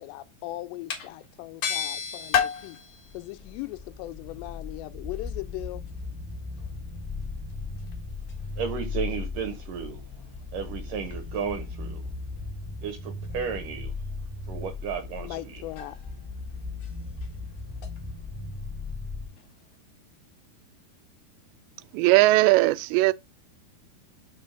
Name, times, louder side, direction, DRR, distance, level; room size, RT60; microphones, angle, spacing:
voice 1, 0.0-2.8 3.1-5.9 15.2-16.0, left 17 dB, 85° left, 2.8 m, -39 dB
sound 1, 0.9-19.6, left 8 dB, 60° left, 2.1 m, -36 dB
sound 2, 2.9-19.3, left 3 dB, 25° left, 1.1 m, -37 dB
voice 2, 8.6-10.0 10.5-12.0 12.8-13.9 14.5-15.6, right 7 dB, 70° right, 2.1 m, -33 dB
voice 3, 21.9-23.1, right 20 dB, 90° right, 2.8 m, -19 dB
6.2 x 4.0 x 5.6 m
omnidirectional pair, 4.9 m